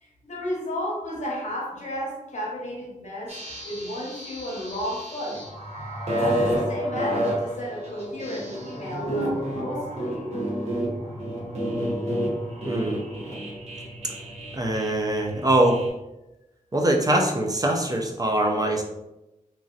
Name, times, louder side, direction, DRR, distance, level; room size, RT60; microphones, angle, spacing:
voice 1, 0.0-3.4 3.6-5.4 6.1-10.3, equal, 60° left, -2 dB, 0.9 m, -33 dB
sound 1, 3.3-15.9, equal, 50° right, 1.1 m, -30 dB
voice 2, 12.7-13.0 14.5-15.8 16.7-18.8, right 1 dB, 25° right, 1 dB, 0.4 m, -23 dB
3.0 x 2.6 x 2.5 m, 0.95 s
wide cardioid pair, 85°, 14 cm